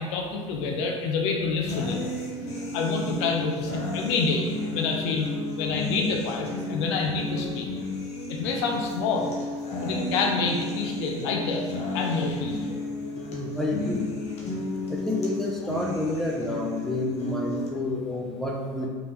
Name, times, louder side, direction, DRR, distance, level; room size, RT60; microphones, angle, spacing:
voice 1, 0.0-2.0 2.7-5.3 5.6-7.7 8.3-9.3 9.8-12.8, left 4 dB, 60° left, 1 dB, 0.8 m, -27 dB
sound 1, 1.7-17.7, left 2 dB, 40° left, 1.5 m, -33 dB
voice 2, 13.3-14.1 14.9-18.9, left 1 dB, ahead, -1 dB, 1.1 m, -29 dB
5.8 x 3.8 x 4.5 m, 1.5 s
figure-of-eight pair, 65°, 16 cm